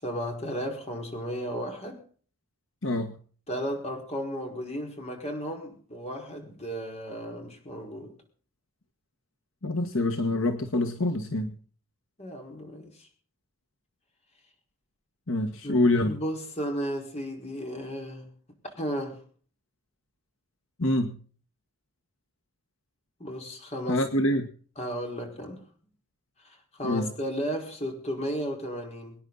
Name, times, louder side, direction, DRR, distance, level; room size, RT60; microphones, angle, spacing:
voice 1, 0.0-2.0 3.5-8.1 12.2-13.1 15.6-18.3 18.6-19.2 23.2-24.0 24.8-25.6 26.7-29.2, equal, 30° left, 2 dB, 4.7 m, -34 dB
voice 2, 2.8-3.1 9.6-11.5 15.3-16.2 20.8-21.2 23.9-24.5 26.8-27.1, left 1 dB, 70° left, 6 dB, 1.5 m, -26 dB
25.0 x 10.0 x 4.0 m, 0.43 s
head